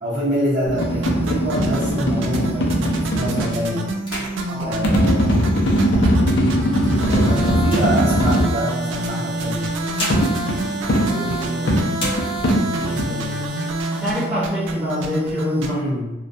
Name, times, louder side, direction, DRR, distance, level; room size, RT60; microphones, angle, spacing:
voice 1, 0.0-3.8 4.6-5.4 6.9-9.7 12.7-13.4 15.6-16.1, equal, 40° right, -10 dB, 0.9 m, -26 dB
sound 1, 0.7-3.6 4.8-8.6 10.1-13.1, equal, 65° left, 0.4 m, -20 dB
sound 2, 0.7-2.9 3.4-3.6 3.9-5.9 6.5-8.7 9.6-11.6 11.9-12.8 13.2-13.3 13.6-14.3 14.7-15.6, left 1 dB, 30° left, 0.7 m, -35 dB
sound 3, 0.7-15.7, right 1 dB, 80° right, 0.3 m, -27 dB
voice 2, 11.0-11.7 14.0-15.8, equal, 5° right, -12 dB, 1.0 m, -26 dB
2.2 x 2.2 x 2.6 m, 1.0 s
head